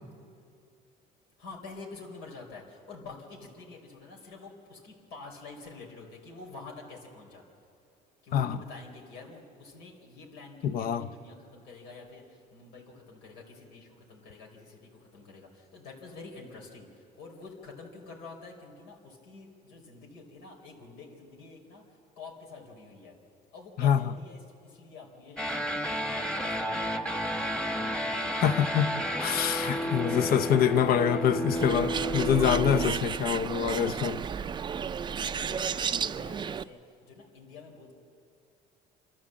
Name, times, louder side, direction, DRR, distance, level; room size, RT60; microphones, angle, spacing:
voice 1, 1.4-7.4 8.2-12.2 12.5-16.9 17.2-21.8 22.2-23.1 23.5-26.1 26.4-27.9 34.7-37.9, left 4 dB, 85° left, 4.0 m, -47 dB
voice 2, 10.6-11.1 23.8-24.0 28.3-28.9 29.2-34.2, left 8 dB, 55° left, 0.7 m, -25 dB
sound 1, 25.4-32.9, equal, 5° left, 1.2 m, -31 dB
Bird, 31.5-36.6, right 7 dB, 25° right, 0.4 m, -32 dB
27.5 x 12.5 x 7.6 m
cardioid pair, 120°, 18 cm